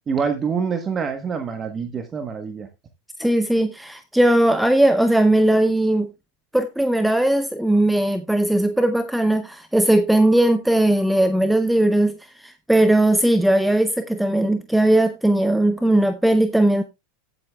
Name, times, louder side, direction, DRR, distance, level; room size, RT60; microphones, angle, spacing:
voice 1, 0.1-2.7, right 6 dB, 25° right, 1.1 m, -26 dB
voice 2, 3.2-6.1 6.5-16.8, right 1 dB, ahead, 0.7 m, -18 dB
14.5 x 8.2 x 2.3 m
supercardioid pair, 125°, 0 cm